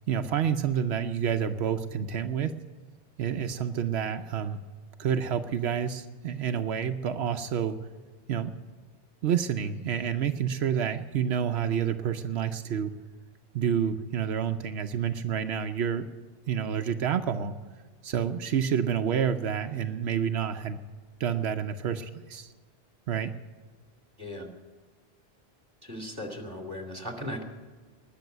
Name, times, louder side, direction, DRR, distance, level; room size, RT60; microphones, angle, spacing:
voice 1, 0.1-2.5 3.2-4.6 5.0-7.8 8.3-8.5 9.2-12.9 13.5-16.1 16.5-17.5 18.0-20.8 21.2-22.5 23.1-23.3, right 8 dB, 85° right, 8 dB, 1.0 m, -28 dB
voice 2, 25.8-27.4, left 1 dB, 20° right, 4 dB, 2.4 m, -37 dB
20.0 x 6.9 x 9.3 m, 1.5 s
omnidirectional pair, 1.1 m